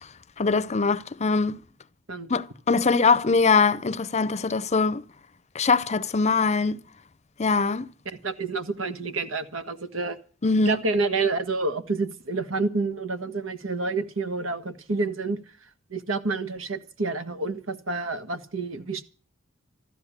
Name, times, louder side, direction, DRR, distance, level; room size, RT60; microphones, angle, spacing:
voice 1, 0.4-1.6 2.3-5.0 5.5-6.8 7.4-7.9 10.4-10.8, left 4 dB, 35° left, 0.7 m, -22 dB
voice 2, 8.0-10.2 10.6-15.4 15.9-19.0, right 3 dB, 80° right, 1.6 m, -28 dB
14.0 x 11.5 x 7.3 m
head